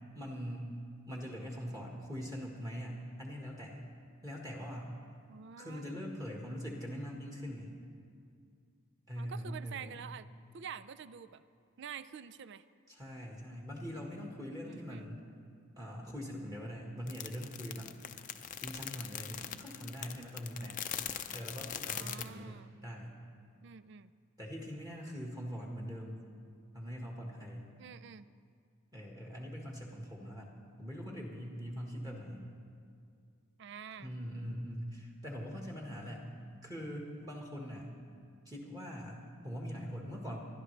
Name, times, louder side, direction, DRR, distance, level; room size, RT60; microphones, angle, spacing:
voice 1, 0.1-0.7 1.1-3.8 4.2-4.9 5.6-7.7 9.1-10.0 12.9-15.3 15.8-17.9 18.6-20.9 21.3-23.1 24.4-26.2 26.7-27.7 28.9-32.5 34.0-36.3 36.6-37.9 38.4-40.4, equal, 20° right, -2 dB, 1.6 m, -42 dB
voice 2, 5.3-6.0 9.2-10.3 10.5-11.4 11.8-12.6 14.7-15.1 21.9-22.7 23.6-24.1 27.8-28.3 33.6-34.1, right 7 dB, 60° right, 15 dB, 0.4 m, -47 dB
sound 1, 17.1-22.3, left 9 dB, 40° left, 0.5 m, -41 dB
27.5 x 11.5 x 3.3 m, 2.2 s
head